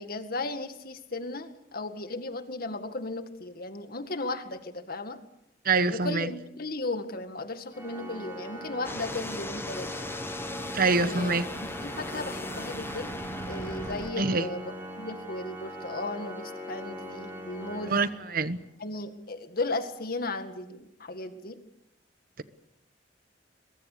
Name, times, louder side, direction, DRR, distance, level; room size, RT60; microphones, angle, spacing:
voice 1, 0.0-5.2 5.9-10.0 11.0-11.3 11.8-13.1 13.5-14.6 15.0-18.0 18.8-21.6, left 2 dB, 55° left, 8 dB, 2.0 m, -35 dB
voice 2, 5.6-6.3 10.7-11.4 14.2-14.5 17.9-18.6, right 3 dB, 55° right, 13 dB, 1.2 m, -25 dB
Organ, 7.7-18.7, equal, 15° right, 6.7 m, -40 dB
sound 1, 8.8-14.1, left 2 dB, 15° left, 1.1 m, -38 dB
23.0 x 22.5 x 6.9 m, 0.85 s
head